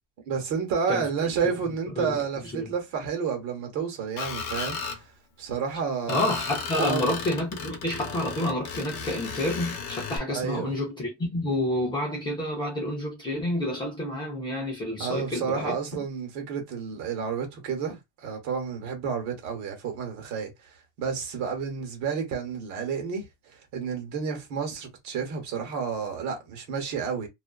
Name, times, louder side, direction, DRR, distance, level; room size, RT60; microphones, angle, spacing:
voice 1, 0.3-4.8 5.4-6.3 6.8-7.1 10.3-10.7 15.0-20.5 21.0-23.3 23.7-27.3, right 6 dB, 50° right, 1.1 m, -30 dB
Screech, 4.2-5.0 6.1-10.2, left 5 dB, 60° left, 0.7 m, -35 dB
voice 2, 6.1-15.7, left 1 dB, 15° left, 0.5 m, -29 dB
2.5 x 2.3 x 2.3 m
cardioid pair, 165°, 36 cm